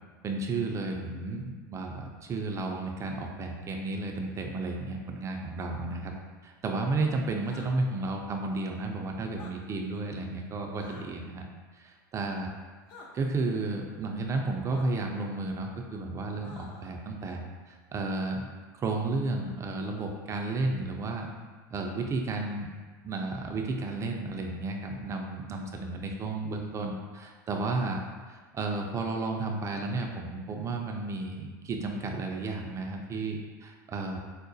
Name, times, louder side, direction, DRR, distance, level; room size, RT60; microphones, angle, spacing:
voice 1, 0.2-6.1 6.4-11.5 11.7-12.5 13.1-18.5 18.7-21.3 21.7-22.7 23.0-28.0 28.3-34.2, right 3 dB, 25° right, 2 dB, 0.4 m, -32 dB
sound 1, 7.4-7.7 9.3-9.5 10.8-11.1 12.9-13.1 14.7-14.8 16.4-16.9, left 3 dB, 45° left, 0.6 m, -49 dB
4.7 x 2.1 x 2.6 m, 1.4 s
hypercardioid pair, 100°, 11 cm